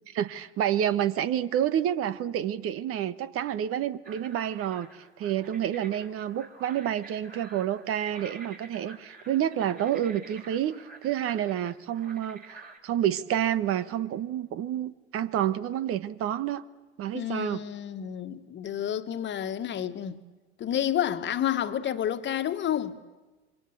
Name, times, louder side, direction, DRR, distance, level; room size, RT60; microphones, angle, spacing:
voice 1, 0.1-4.9 5.2-16.7 17.0-17.6, right 10 dB, 40° right, 1.4 m, -29 dB
sound 1, 4.0-12.8, right 3 dB, 25° right, 4.7 m, -49 dB
voice 2, 17.1-20.2 20.6-23.0, left 10 dB, 35° left, 1.8 m, -30 dB
27.0 x 23.5 x 8.4 m
hypercardioid pair, 85°, 33 cm